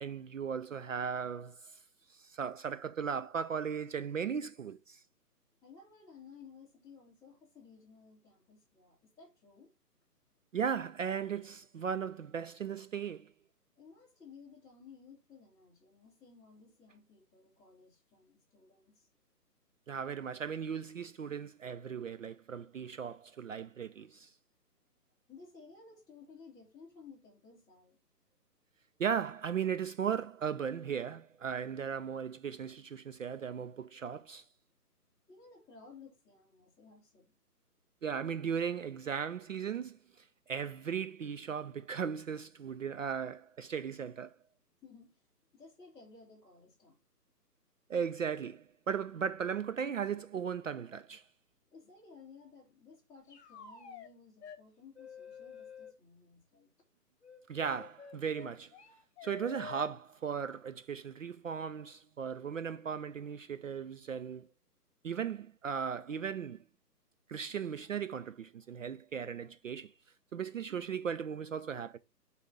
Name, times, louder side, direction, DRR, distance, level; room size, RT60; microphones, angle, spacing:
voice 1, 0.0-1.8 2.1-5.0 10.5-13.3 19.9-24.3 29.0-34.4 38.0-44.4 47.9-51.2 57.5-58.7 59.2-64.5 65.0-66.6 67.3-69.9 70.3-72.0, right 7 dB, 55° right, 0.5 m, -37 dB
voice 2, 5.6-9.7 13.8-19.1 25.3-28.0 35.3-37.3 44.8-45.1 45.5-47.0 51.7-56.7, left 5 dB, 5° left, 2.8 m, -56 dB
sound 1, 53.3-54.1 54.4-54.6 55.0-55.9 57.2-59.9, left 6 dB, 40° left, 2.0 m, -49 dB
6.7 x 5.0 x 5.0 m
hypercardioid pair, 155°, 48 cm